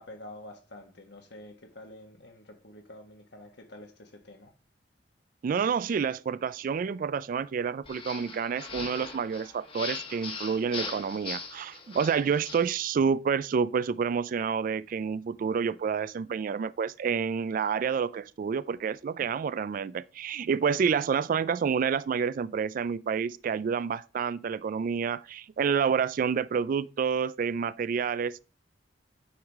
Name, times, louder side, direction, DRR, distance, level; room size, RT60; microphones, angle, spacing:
voice 1, 0.0-4.5, left 1 dB, 70° left, 1.5 m, -48 dB
voice 2, 5.4-28.4, right 6 dB, 50° right, 0.3 m, -29 dB
sound 1, 7.8-12.7, left 4 dB, 30° left, 1.2 m, -40 dB
9.6 x 4.8 x 3.5 m
head